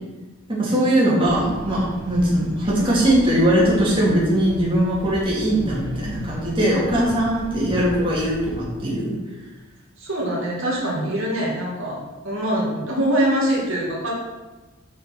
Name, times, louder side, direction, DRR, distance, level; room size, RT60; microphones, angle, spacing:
voice 1, 0.5-9.1, right 1 dB, 25° right, -6 dB, 2.3 m, -20 dB
sound 1, 1.2-8.6, equal, 20° left, 1.8 m, -37 dB
voice 2, 10.0-14.1, right 1 dB, 70° right, -4 dB, 2.2 m, -23 dB
6.3 x 5.4 x 6.0 m, 1.2 s
head